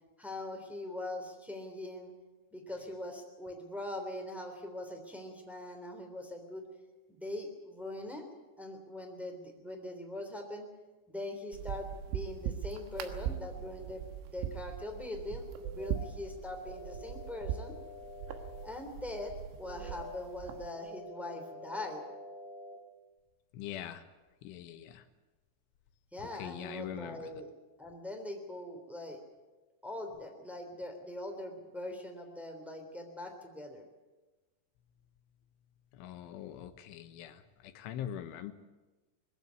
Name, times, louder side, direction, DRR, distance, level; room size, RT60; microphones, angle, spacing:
voice 1, 0.2-2.1 2.5-6.7 7.1-8.2 8.6-10.7 11.1-17.8 18.6-22.0 26.1-27.5 27.8-29.2 29.8-33.8, left 1 dB, ahead, 2 dB, 1.9 m, -42 dB
sound 1, 11.5-20.7, right 10 dB, 80° right, 4.0 m, -41 dB
sound 2, 15.5-16.1 16.6-18.6 19.6-20.3 20.7-22.7, left 2 dB, 60° right, 6.6 m, -48 dB
voice 2, 23.5-24.0 24.5-25.0 26.4-27.3 36.0-37.4 37.8-38.5, left 10 dB, 80° left, 9 dB, 3.5 m, -42 dB
21.5 x 15.5 x 9.5 m, 1.2 s
omnidirectional pair, 5.7 m